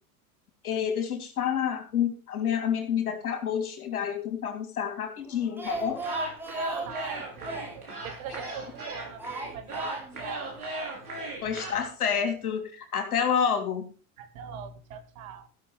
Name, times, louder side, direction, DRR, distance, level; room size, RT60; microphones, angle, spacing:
voice 1, 0.6-6.0 11.4-13.9, left 8 dB, 80° left, 5 dB, 3.4 m, -28 dB
Speech, 5.3-8.8 9.2-10.3 10.6-10.7 11.0-11.1, right 2 dB, 5° right, 2.1 m, -39 dB
sound 1, 5.6-11.7, right 2 dB, 90° right, 6.1 m, -37 dB
voice 2, 6.9-10.8 11.4-11.8 14.2-15.5, right 7 dB, 65° right, 9 dB, 2.3 m, -43 dB
15.0 x 6.6 x 5.6 m, 0.37 s
hypercardioid pair, 90°, 43 cm